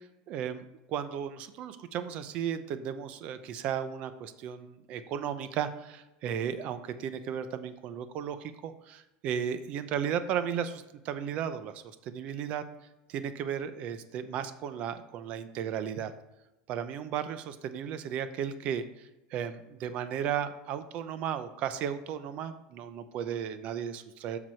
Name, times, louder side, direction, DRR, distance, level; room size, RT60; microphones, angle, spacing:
voice 1, 0.3-12.6 13.1-16.1 16.7-18.8 19.3-24.4, right 8 dB, 40° right, 11 dB, 0.6 m, -35 dB
7.6 x 5.9 x 4.5 m, 0.99 s
cardioid pair, 170°, 3 cm